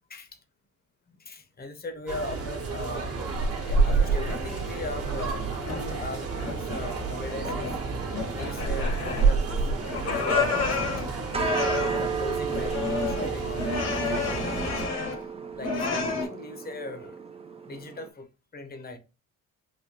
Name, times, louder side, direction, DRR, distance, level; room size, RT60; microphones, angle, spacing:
voice 1, 1.1-3.2 3.6-15.1 15.6-17.2 17.7-18.3 18.5-19.0, left 2 dB, 30° left, 0.8 m, -39 dB
sound 1, 2.1-14.9, right 4 dB, 55° right, 1.1 m, -29 dB
sound 2, 3.8-4.6 5.0-6.1 6.4-6.9 7.2-7.8 8.1-9.6 9.8-12.1 12.5-15.2 15.6-16.3, left 4 dB, 60° left, 1.2 m, -30 dB
sound 3, 6.5-18.1, right 6 dB, 20° right, 0.4 m, -36 dB
4.1 x 2.2 x 2.8 m
cardioid pair, 90°, 30 cm